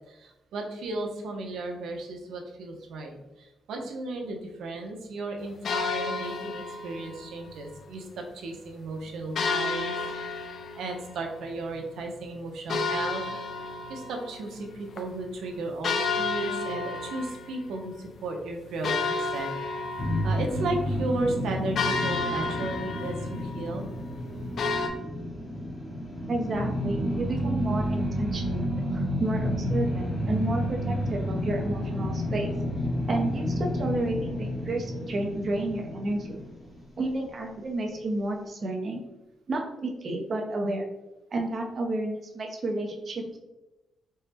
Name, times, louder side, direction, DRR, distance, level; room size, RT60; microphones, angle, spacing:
voice 1, 0.0-9.9 10.8-13.2 13.9-19.8 20.2-23.9, right 2 dB, 85° right, 2 dB, 0.7 m, -35 dB
sound 1, 5.6-7.3 9.4-11.8 12.7-14.7 15.0-15.1 15.8-17.8 18.3-18.4 18.8-24.9, left 4 dB, 55° left, 0.4 m, -31 dB
sound 2, 20.0-37.2, equal, 20° left, 0.8 m, -30 dB
voice 2, 26.3-32.5 33.1-36.5 37.0-39.0 39.5-40.9 41.3-43.4, right 2 dB, 40° right, 1 dB, 0.6 m, -31 dB
4.3 x 2.1 x 3.3 m, 0.99 s
cardioid pair, 140°, 0 cm